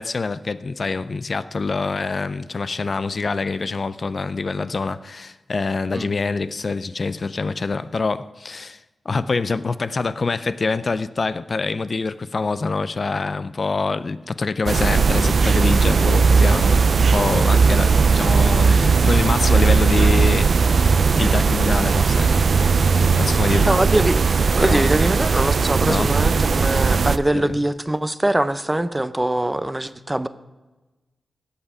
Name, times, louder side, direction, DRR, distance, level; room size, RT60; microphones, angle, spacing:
voice 1, 0.0-22.8 23.1-23.8 24.6-24.9 25.8-26.2 27.3-27.6, left 4 dB, 50° left, 0.4 m, -25 dB
sound 1, 14.7-27.2, right 5 dB, 65° right, 0.4 m, -17 dB
voice 2, 23.7-30.3, right 1 dB, 15° right, 0.5 m, -23 dB
16.5 x 5.6 x 4.9 m
cardioid pair, 70°, 0 cm